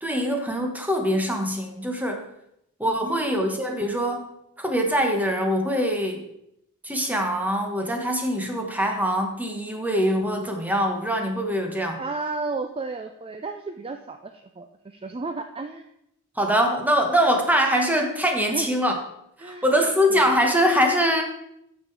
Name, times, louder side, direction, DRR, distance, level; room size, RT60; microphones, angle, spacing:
voice 1, 0.0-2.2 2.8-4.2 4.6-6.2 6.8-12.0 16.4-18.9 19.4-21.2, equal, 5° right, 3 dB, 1.2 m, -23 dB
voice 2, 2.9-3.2 12.0-15.9 18.5-18.7 19.4-19.6 20.1-20.3, right 3 dB, 25° right, 7 dB, 0.4 m, -33 dB
9.0 x 6.8 x 4.6 m, 0.79 s
head